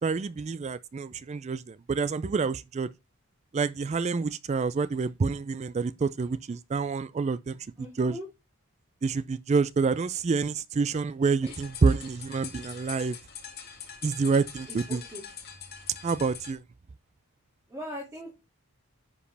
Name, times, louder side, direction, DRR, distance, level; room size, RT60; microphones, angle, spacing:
voice 1, 0.0-2.9 3.5-7.6 8.0-8.2 9.0-13.2 14.0-15.0 16.0-16.6, right 4 dB, 30° right, 0.3 m, -27 dB
voice 2, 7.8-8.3 11.4-11.5 14.7-15.2 17.7-18.3, equal, 15° right, 2.3 m, -40 dB
sound 1, 11.4-16.6, left 7 dB, 45° left, 2.1 m, -43 dB
10.0 x 4.9 x 3.3 m
head